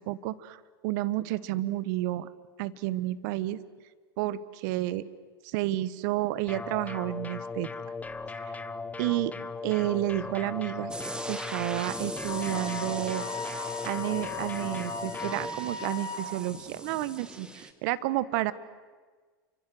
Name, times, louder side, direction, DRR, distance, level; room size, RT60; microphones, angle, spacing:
voice 1, 0.0-2.3 2.6-3.6 4.2-5.0 5.4-7.7 8.4-8.6 9.0-9.3 9.6-10.9 11.3-13.3 13.8-18.5, right 15 dB, 60° right, 17 dB, 1.4 m, -31 dB
sound 1, 6.5-15.5, left 4 dB, 10° left, 1.3 m, -38 dB
sound 2, 10.9-17.7, right 1 dB, 5° right, 2.3 m, -41 dB
Wind instrument woodwind instrument, 12.3-16.2, left 5 dB, 45° left, 4.4 m, -38 dB
29.0 x 25.0 x 7.9 m, 1.5 s
hypercardioid pair, 105°, 12 cm